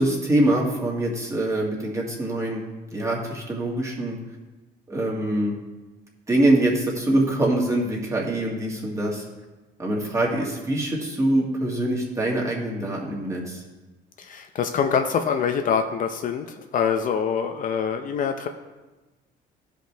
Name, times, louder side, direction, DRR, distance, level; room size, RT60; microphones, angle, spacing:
voice 1, 0.0-2.6 2.9-4.2 4.9-5.5 6.3-9.3 9.8-13.6, right 1 dB, 20° right, -2 dB, 1.9 m, -24 dB
voice 2, 14.2-16.5 16.7-18.5, left 7 dB, 50° left, 6 dB, 0.6 m, -24 dB
14.0 x 5.2 x 3.4 m, 1.2 s
cardioid pair, 110°, 17 cm